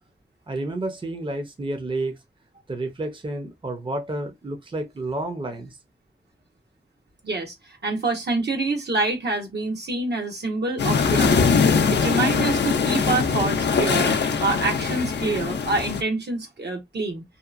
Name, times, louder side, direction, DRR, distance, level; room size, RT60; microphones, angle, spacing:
voice 1, 0.5-2.2 2.7-5.8, right 2 dB, 30° right, 0.6 m, -30 dB
voice 2, 7.2-11.6 11.9-17.2, right 3 dB, 70° right, 1.0 m, -26 dB
sound 1, 10.8-16.0, left 5 dB, 75° left, 0.5 m, -22 dB
2.8 x 2.2 x 2.4 m
wide cardioid pair, 60°, 18 cm